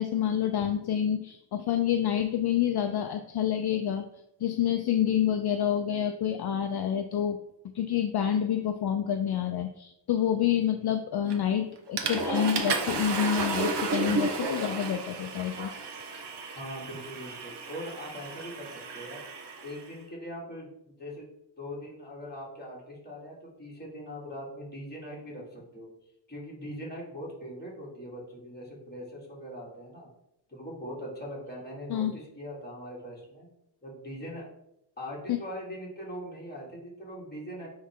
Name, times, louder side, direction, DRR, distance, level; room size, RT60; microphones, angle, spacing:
voice 1, 0.0-4.1 4.4-7.4 7.7-15.8 31.9-32.1 35.3-35.4, left 9 dB, 60° left, 7 dB, 0.5 m, -28 dB
Water / Toilet flush, 11.3-11.6 12.0-19.8, right 3 dB, 60° right, 0.9 m, -33 dB
voice 2, 16.5-19.2 19.6-21.2 21.6-25.9 26.3-30.1 30.5-33.5 33.8-34.5 35.0-37.7, equal, 20° left, -5 dB, 2.4 m, -41 dB
9.4 x 3.2 x 3.6 m, 0.82 s
wide cardioid pair, 145°, 46 cm